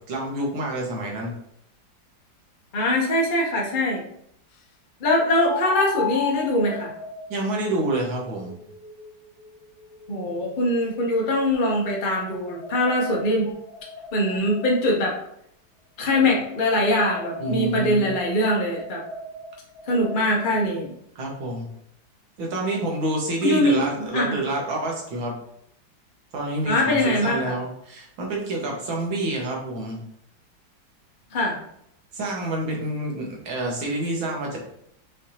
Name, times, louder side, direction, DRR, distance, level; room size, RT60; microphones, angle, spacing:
voice 1, 0.1-1.4 7.3-8.6 17.4-18.1 21.2-21.7 22.4-25.4 26.3-30.0 32.1-34.6, right 2 dB, 80° right, -1 dB, 1.9 m, -28 dB
voice 2, 2.7-4.0 5.0-6.9 10.1-13.5 14.1-15.2 16.0-19.0 19.9-20.9 23.4-24.4 26.6-27.5 31.3-31.6, left 1 dB, 55° left, -2 dB, 0.5 m, -22 dB
sound 1, 5.4-10.6 11.3-15.1 16.1-20.7, left 4 dB, 90° left, 1.5 m, -37 dB
5.6 x 3.3 x 2.8 m, 0.72 s
omnidirectional pair, 2.1 m